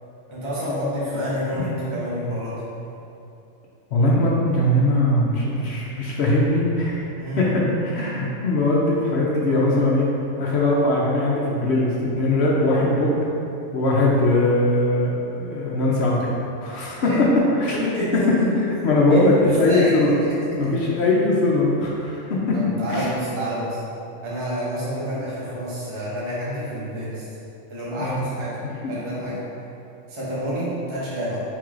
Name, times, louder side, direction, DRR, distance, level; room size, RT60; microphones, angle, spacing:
voice 1, 0.3-2.6 7.2-7.7 17.0-17.2 17.8-18.5 19.1-20.7 22.5-23.8 24.2-27.2 27.7-28.6 28.9-29.4 30.1-31.4, equal, 25° right, -8 dB, 0.8 m, -28 dB
voice 2, 3.9-10.1 10.4-13.1 13.7-16.3 16.6-17.3 17.6-17.8 18.1-18.2 18.7-20.1 20.6-22.6 22.9-23.1 28.0-28.3 28.8-28.9, left 1 dB, 60° left, -4 dB, 0.8 m, -20 dB
4.6 x 3.7 x 2.4 m, 2.8 s
omnidirectional pair, 1.4 m